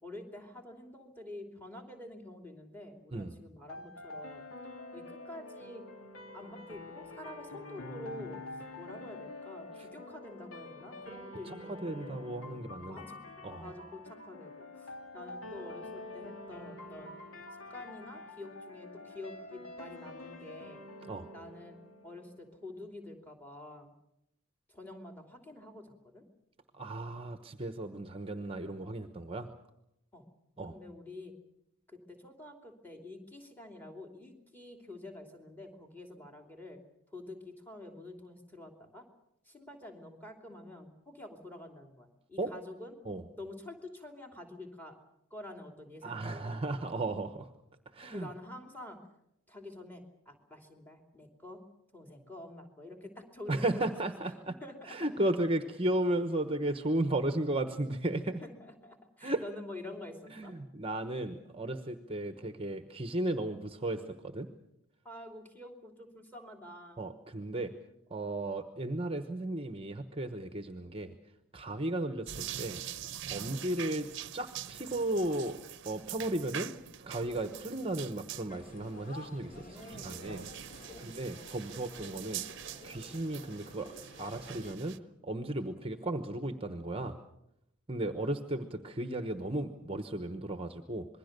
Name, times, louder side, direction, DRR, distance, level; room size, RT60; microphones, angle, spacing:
voice 1, 0.0-4.4 4.9-5.8 6.3-8.4 8.8-12.2 12.9-13.2 13.6-14.9 15.1-17.1 17.7-20.8 21.3-21.8 22.0-23.9 24.7-26.2 30.1-30.2 30.7-31.3 31.9-36.8 37.1-39.0 39.5-42.9 43.4-45.0 45.3-46.5 48.1-49.0 49.5-51.6 51.9-53.8 54.2-54.3 54.6-55.0 58.4-60.5 65.0-67.1 79.5-80.1 80.9-81.1, left 1 dB, 10° left, 4 dB, 3.0 m, -48 dB
voice 2, 3.1-3.4 9.8-9.9 11.4-13.0 13.4-13.7 21.0-21.3 26.7-29.5 30.6-30.7 42.4-42.5 43.0-43.3 46.0-47.5 47.9-48.3 53.5-54.6 54.8-58.4 59.2-59.4 60.3-64.5 67.0-67.7 68.1-71.1 71.5-72.8 73.3-74.1 74.3-75.6 75.8-80.4 81.0-82.4 82.8-83.9 84.2-87.2 87.9-91.1, right 1 dB, 25° right, 8 dB, 1.0 m, -35 dB
sound 1, 3.7-22.6, left 2 dB, 65° left, 2.8 m, -47 dB
sound 2, 72.3-85.0, right 10 dB, 55° right, 0.8 m, -44 dB
sound 3, 78.5-84.7, left 1 dB, 35° left, 2.9 m, -51 dB
26.5 x 21.5 x 6.7 m, 0.82 s
head